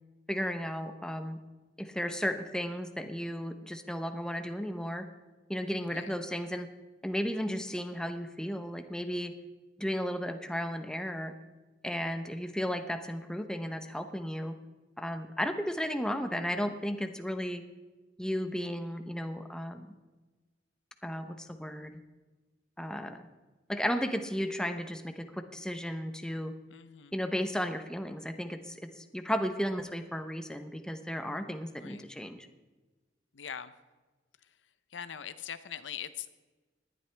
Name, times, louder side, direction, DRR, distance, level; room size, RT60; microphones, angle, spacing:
voice 1, 0.3-1.4 1.8-5.1 5.5-6.7 7.0-9.3 9.8-11.3 11.8-14.5 15.0-17.6 18.2-19.9 21.0-21.9 22.8-23.2 23.7-26.5 27.1-32.5, equal, 5° left, 7 dB, 0.8 m, -34 dB
voice 2, 5.8-6.1 26.7-27.2 31.8-32.0 33.3-33.7 34.4-34.5 34.9-36.4, left 8 dB, 80° left, 13 dB, 0.7 m, -42 dB
19.0 x 11.5 x 3.4 m, 1.2 s
head